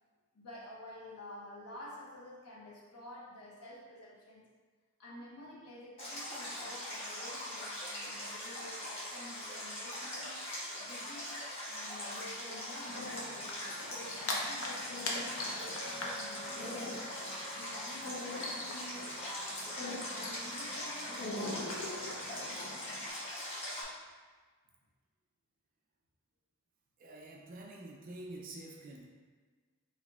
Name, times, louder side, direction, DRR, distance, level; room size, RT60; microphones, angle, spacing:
voice 1, 0.3-4.5 5.0-10.4 10.8-11.4 11.7-16.7 17.5-19.8 20.1-21.9, left 1 dB, 85° left, -5 dB, 0.9 m, -50 dB
Stream, 6.0-23.8, left 1 dB, 25° left, 1.0 m, -41 dB
sound 1, 12.9-23.1, left 2 dB, 60° left, 0.6 m, -42 dB
Chink clink, 15.8-20.3, right 1 dB, 80° right, 0.7 m, -54 dB
voice 2, 27.0-29.0, right 2 dB, 40° right, -1 dB, 0.4 m, -47 dB
4.5 x 3.5 x 2.3 m, 1.4 s
head